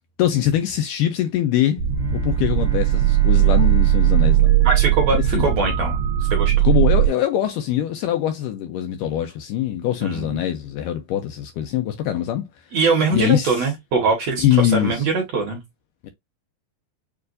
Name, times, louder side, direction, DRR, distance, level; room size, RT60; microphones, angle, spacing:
voice 1, 0.2-1.8 2.1-4.5 5.3-5.5 6.6-12.5 13.1-13.7 14.4-15.1 16.0-16.1, left 11 dB, 80° left, 2.0 m, -23 dB
Bowed string instrument, 1.8-6.3, right 8 dB, 5° left, 0.9 m, -39 dB
sound 1, 1.8-7.1, right 12 dB, 80° right, 1.8 m, -18 dB
voice 2, 4.6-6.5 10.0-10.3 12.7-15.6, right 4 dB, 60° right, 1.9 m, -22 dB
6.7 x 2.5 x 2.5 m
omnidirectional pair, 4.2 m